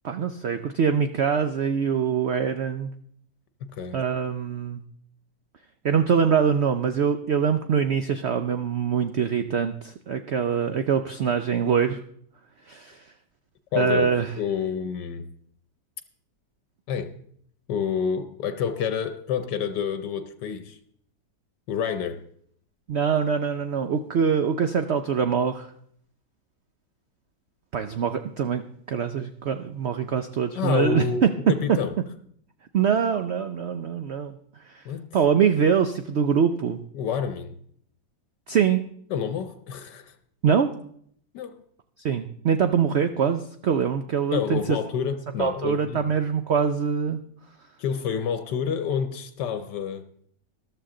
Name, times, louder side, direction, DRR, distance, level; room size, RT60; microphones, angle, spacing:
voice 1, 0.0-2.9 3.9-4.8 5.8-12.0 12.7-13.0 13.8-14.3 22.9-25.7 27.7-31.3 32.7-34.4 34.7-34.8 35.1-36.8 38.5-38.8 40.4-40.7 42.0-44.6 45.4-47.2, right 7 dB, 80° right, 0.6 m, -24 dB
voice 2, 3.7-4.0 13.7-15.3 16.9-17.2 17.7-20.8 21.7-22.2 30.6-31.2 31.5-31.9 34.8-35.1 36.9-37.6 39.1-40.2 41.3-41.6 44.3-46.1 47.8-50.0, left 7 dB, 75° left, 1.3 m, -28 dB
13.5 x 12.0 x 3.8 m
omnidirectional pair, 1.9 m